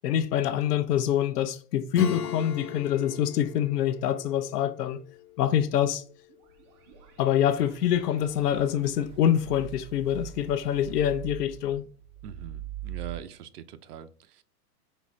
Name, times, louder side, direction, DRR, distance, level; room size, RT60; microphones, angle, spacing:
voice 1, 0.0-5.0 5.4-6.0 7.2-11.8, left 10 dB, 80° left, 0.6 m, -25 dB
Acoustic guitar / Strum, 1.9-6.2, left 7 dB, 60° left, 0.9 m, -37 dB
sound 1, 6.3-13.2, right 12 dB, 20° right, 0.3 m, -43 dB
voice 2, 12.2-14.4, right 9 dB, 75° right, 0.5 m, -42 dB
4.2 x 2.8 x 3.1 m
hypercardioid pair, 105°, 47 cm